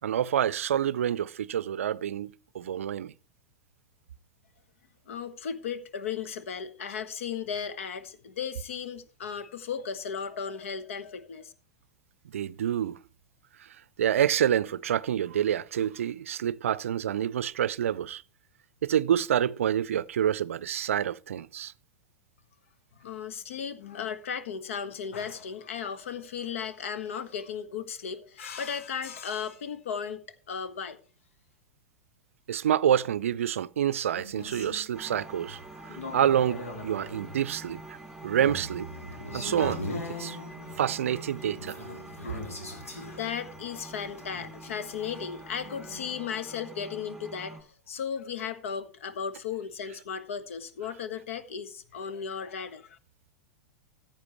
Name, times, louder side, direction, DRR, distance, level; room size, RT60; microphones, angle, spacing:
voice 1, 0.0-3.1 12.3-13.0 13.6-13.7 14.0-18.2 18.8-21.7 32.5-38.0 38.2-38.9 39.3-39.8 40.2-40.4 40.8-41.8, right 10 dB, 70° right, 0.4 m, -27 dB
voice 2, 5.1-11.5 22.9-30.2 30.5-31.0 42.2-53.0, left 7 dB, 70° left, 1.3 m, -36 dB
sound 1, 34.1-46.1, left 1 dB, 85° left, 2.8 m, -41 dB
sound 2, 34.9-47.6, right 2 dB, ahead, 2.9 m, -46 dB
14.5 x 8.9 x 3.1 m
figure-of-eight pair, 95°, 7 cm